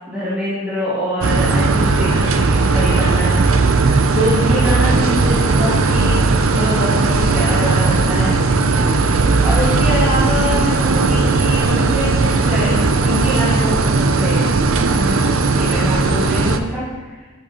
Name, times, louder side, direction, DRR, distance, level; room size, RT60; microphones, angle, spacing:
voice 1, 0.1-8.4 9.4-14.4 14.9-17.2, equal, 5° right, -13 dB, 3.1 m, -24 dB
sound 1, 1.2-16.6, right 3 dB, 65° right, 0.6 m, -16 dB
10.5 x 8.2 x 3.0 m, 1.3 s
head